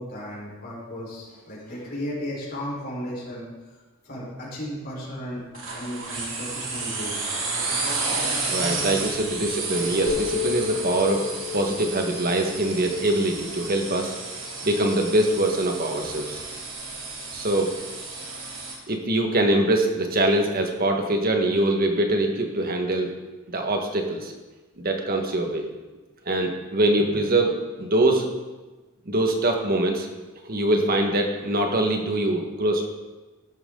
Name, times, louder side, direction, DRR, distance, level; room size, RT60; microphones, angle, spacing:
voice 1, 0.0-3.5 4.0-7.4, equal, 50° left, -5 dB, 4.8 m, -35 dB
sound 1, 5.5-18.8, right 3 dB, 70° right, 3.4 m, -32 dB
voice 2, 8.5-11.2 11.5-14.1 14.6-16.4 17.3-17.7 18.9-23.1 23.5-24.3 24.8-25.7 26.2-28.3 29.0-30.1 30.4-32.9, right 1 dB, 45° right, 3 dB, 1.7 m, -23 dB
sound 2, 10.1-14.1, left 8 dB, 85° left, 3.6 m, -33 dB
14.5 x 12.0 x 4.0 m, 1.2 s
head